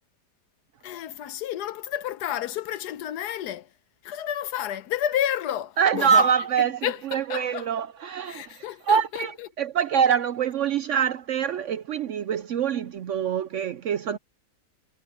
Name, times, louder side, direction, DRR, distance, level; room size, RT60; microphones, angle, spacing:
voice 1, 0.8-3.7 4.0-6.3 6.6-7.7 8.3-9.5, left 11 dB, 80° left, 1.3 m, -31 dB
voice 2, 5.8-14.2, right 7 dB, 65° right, 0.8 m, -25 dB
omnidirectional pair, 1.7 m